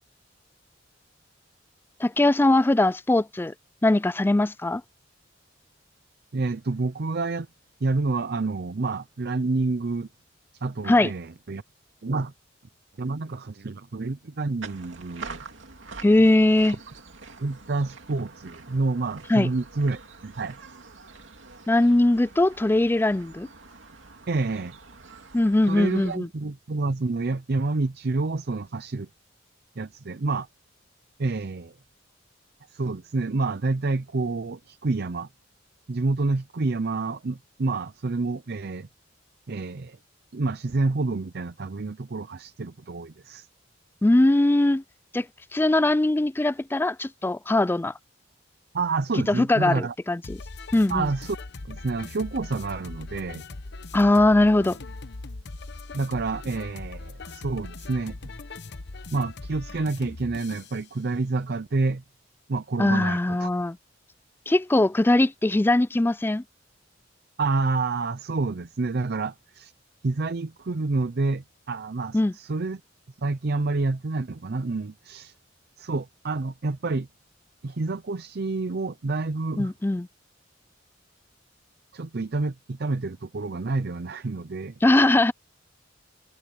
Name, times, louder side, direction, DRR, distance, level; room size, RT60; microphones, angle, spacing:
voice 1, 2.0-3.5 3.8-4.8 10.9-11.1 16.0-16.8 19.3-19.5 21.7-23.5 25.3-26.3 44.0-44.8 45.1-45.2 45.5-47.9 49.3-50.4 50.7-51.1 53.9-54.8 62.8-63.8 64.5-66.4 72.1-72.3 79.6-80.1 84.8-85.3, left 2 dB, 10° left, 0.3 m, -21 dB
voice 2, 6.3-7.5 7.8-10.1 10.5-11.6 12.0-12.3 13.0-15.4 17.4-20.6 24.3-24.7 25.7-29.1 29.8-30.5 31.2-31.7 32.7-35.3 35.9-38.9 39.5-40.0 40.3-43.5 48.7-49.9 50.9-51.4 51.7-53.4 55.9-58.2 59.1-62.0 62.5-63.5 67.4-69.7 70.0-72.8 73.2-75.3 75.8-77.1 77.6-79.7 81.9-84.7, right 3 dB, 55° right, 0.6 m, -28 dB
sound 1, 14.6-26.2, right 4 dB, 80° right, 2.6 m, -45 dB
sound 2, 50.2-60.8, left 3 dB, 65° left, 1.0 m, -40 dB
head